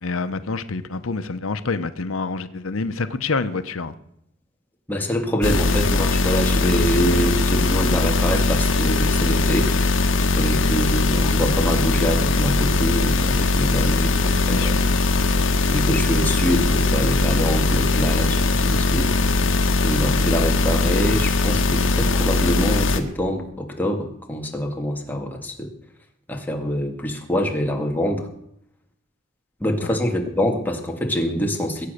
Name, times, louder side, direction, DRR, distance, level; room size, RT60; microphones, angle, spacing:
voice 1, 0.0-3.9 14.4-14.8 29.8-30.0, left 4 dB, 85° left, 11 dB, 0.9 m, -27 dB
voice 2, 4.9-9.7 10.4-14.9 15.7-19.1 19.8-25.7 26.3-28.3 29.6-31.9, equal, 10° left, 2 dB, 2.1 m, -25 dB
sound 1, 5.4-23.0, left 3 dB, 65° left, 1.5 m, -20 dB
21.5 x 8.8 x 6.6 m, 0.76 s
head